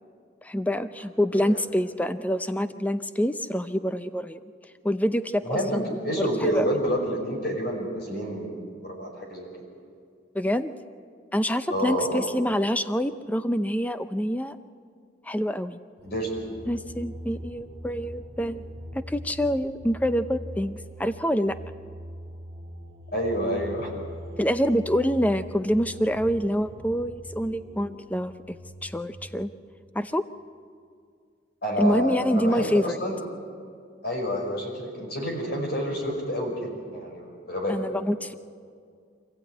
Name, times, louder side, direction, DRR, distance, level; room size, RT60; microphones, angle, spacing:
voice 1, 0.4-4.4 4.8-6.7 10.3-10.7 11.3-14.6 15.2-15.8 16.7-18.6 18.9-21.6 24.4-29.5 29.9-30.2 31.8-33.0 37.7-38.3, equal, 10° left, 11 dB, 0.6 m, -26 dB
voice 2, 1.3-1.6 5.4-8.5 8.8-9.5 11.7-12.3 16.0-16.3 23.1-23.9 31.6-33.2 34.0-37.8, equal, 55° left, 1 dB, 5.6 m, -29 dB
sound 1, 16.0-29.4, left 1 dB, 25° right, 2.5 m, -42 dB
26.0 x 15.0 x 9.1 m, 2.2 s
head